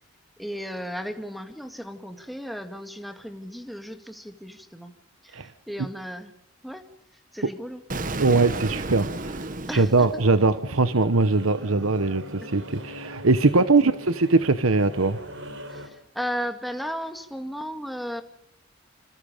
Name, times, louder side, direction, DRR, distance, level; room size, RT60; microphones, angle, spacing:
voice 1, 0.4-4.9 5.2-6.3 6.6-6.8 7.3-7.8 9.7-10.1 13.5-13.7 15.7-18.2, equal, ahead, 6 dB, 1.9 m, -35 dB
Explosion, 7.9-10.8, right 2 dB, 40° right, 1.3 m, -33 dB
voice 2, 8.2-15.2, right 3 dB, 85° right, 11 dB, 1.0 m, -21 dB
sound 1, 10.4-15.9, equal, 65° right, 4.4 m, -41 dB
28.0 x 27.0 x 5.1 m, 0.71 s
head